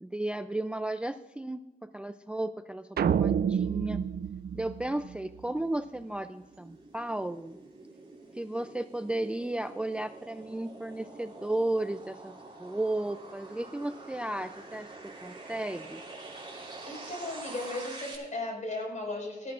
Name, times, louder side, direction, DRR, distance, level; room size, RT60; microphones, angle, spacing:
voice 1, 0.0-4.0 4.5-7.6 8.3-16.0, right 1 dB, 5° right, 11 dB, 0.3 m, -34 dB
sound 1, 3.0-5.4, right 8 dB, 80° right, 0.5 m, -28 dB
sound 2, 5.0-18.2, right 2 dB, 30° right, 3.5 m, -47 dB
voice 2, 16.9-19.5, left 2 dB, 50° left, 0 dB, 4.9 m, -36 dB
19.0 x 13.0 x 2.4 m, 1.1 s
wide cardioid pair, 125°, 16 cm